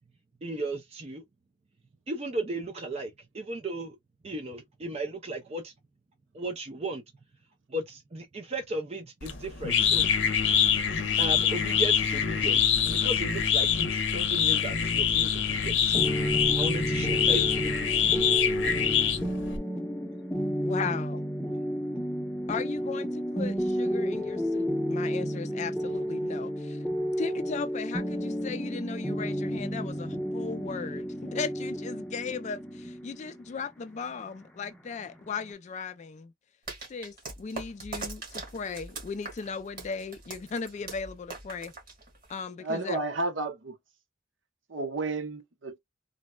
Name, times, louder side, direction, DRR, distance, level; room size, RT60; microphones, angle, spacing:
voice 1, 0.4-1.2 2.1-4.0 4.2-5.7 6.3-7.0 7.7-10.1 11.2-17.8, right 2 dB, 35° right, 0.5 m, -36 dB
sound 1, 9.2-19.6, left 8 dB, 65° left, 0.7 m, -25 dB
sound 2, 15.9-35.5, equal, 5° left, 0.7 m, -32 dB
voice 2, 20.6-21.2 22.5-26.8 27.2-36.3 36.9-41.7 42.3-43.0, left 5 dB, 40° left, 0.3 m, -37 dB
sound 3, 36.7-42.4, right 3 dB, 50° right, 1.9 m, -41 dB
voice 3, 42.6-43.8 44.7-45.8, right 2 dB, 75° right, 0.9 m, -32 dB
3.8 x 2.1 x 2.2 m
head